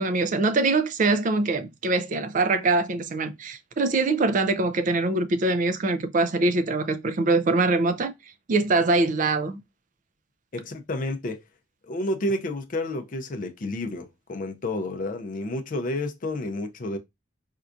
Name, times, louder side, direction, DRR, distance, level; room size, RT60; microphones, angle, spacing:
voice 1, 0.0-8.1 8.5-9.6, right 3 dB, 45° right, 0.4 m, -23 dB
voice 2, 10.5-11.4 11.9-17.0, left 1 dB, 45° left, 0.5 m, -30 dB
4.3 x 2.3 x 2.5 m
head